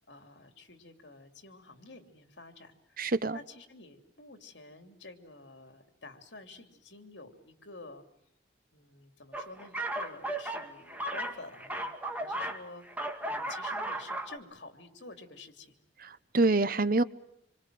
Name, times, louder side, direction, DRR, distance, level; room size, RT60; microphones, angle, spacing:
voice 1, 0.1-3.0 3.3-8.0 8.7-15.8, left 3 dB, 70° left, 3.2 m, -50 dB
voice 2, 3.0-3.4 16.0-17.0, right 3 dB, 50° right, 1.0 m, -26 dB
sound 1, 9.3-12.6 12.9-14.4, right 1 dB, 10° right, 2.3 m, -35 dB
27.0 x 25.5 x 7.8 m
head